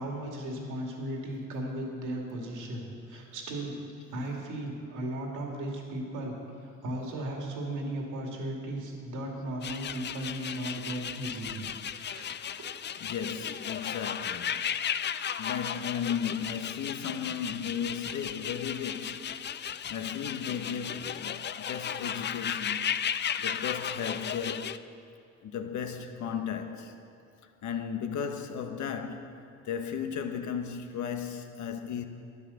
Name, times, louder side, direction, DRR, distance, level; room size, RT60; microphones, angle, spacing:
voice 1, 0.0-3.8 4.1-6.4 6.8-11.6 12.1-12.3, right 1 dB, 80° right, 2.4 m, -36 dB
sound 1, 9.6-24.8, left 8 dB, 35° left, 0.4 m, -35 dB
voice 2, 13.0-14.8 15.4-19.4 19.9-22.8 23.4-24.8 25.4-26.9 27.6-32.0, left 7 dB, 70° left, 1.1 m, -35 dB
12.0 x 9.7 x 7.0 m
cardioid pair, 90°, 30 cm